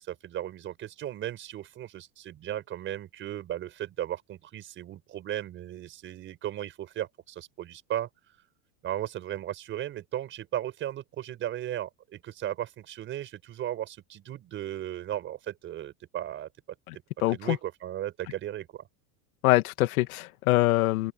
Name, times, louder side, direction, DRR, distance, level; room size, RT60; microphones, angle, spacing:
voice 1, 0.0-8.1 8.8-16.5 17.3-18.8, right 12 dB, 25° right, 5.5 m, -36 dB
voice 2, 17.2-17.6 19.4-21.1, left 18 dB, 60° left, 2.2 m, -24 dB
open air
supercardioid pair, 175°, 48 cm